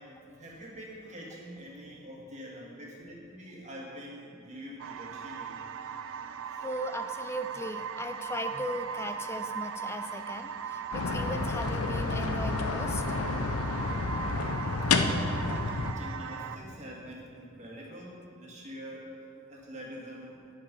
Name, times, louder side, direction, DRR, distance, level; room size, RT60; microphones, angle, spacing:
voice 1, 0.0-6.0 7.5-7.6 14.3-14.9 15.9-19.1 19.5-20.4, equal, 35° right, -3 dB, 2.1 m, -45 dB
sound 1, 4.8-16.6, right 7 dB, 60° right, 0.4 m, -39 dB
voice 2, 6.6-13.0 15.4-15.5, left 1 dB, 10° left, 7 dB, 0.3 m, -37 dB
sound 2, 10.9-15.9, left 3 dB, 80° left, 0.6 m, -30 dB
10.5 x 7.4 x 5.4 m, 2.7 s
head